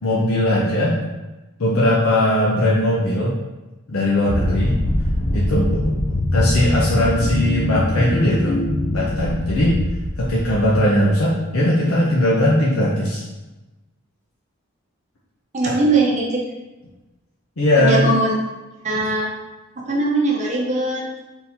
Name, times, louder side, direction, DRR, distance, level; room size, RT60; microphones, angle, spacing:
voice 1, 0.0-1.0 1.6-3.3 3.9-4.7 5.3-5.9 6.3-8.5 8.9-9.8 10.2-13.2 15.6-15.8 17.6-18.0, left 1 dB, 75° left, -6 dB, 0.7 m, -19 dB
sound 1, 4.3-11.1, left 1 dB, 30° left, 0.4 m, -22 dB
voice 2, 15.5-16.4 17.7-18.3 18.8-19.3 19.9-21.0, right 2 dB, 30° right, -3 dB, 0.7 m, -20 dB
3.7 x 2.7 x 4.3 m, 1.1 s
head